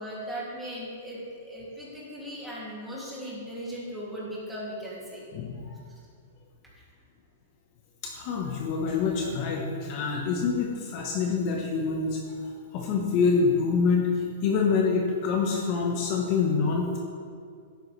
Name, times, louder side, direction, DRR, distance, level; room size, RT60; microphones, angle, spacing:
voice 1, 0.0-5.2, equal, 5° right, -7 dB, 2.6 m, -38 dB
voice 2, 8.0-12.2 12.7-17.0, left 5 dB, 40° left, 0 dB, 1.1 m, -26 dB
11.5 x 9.4 x 3.3 m, 2.3 s
hypercardioid pair, 155°, 0 cm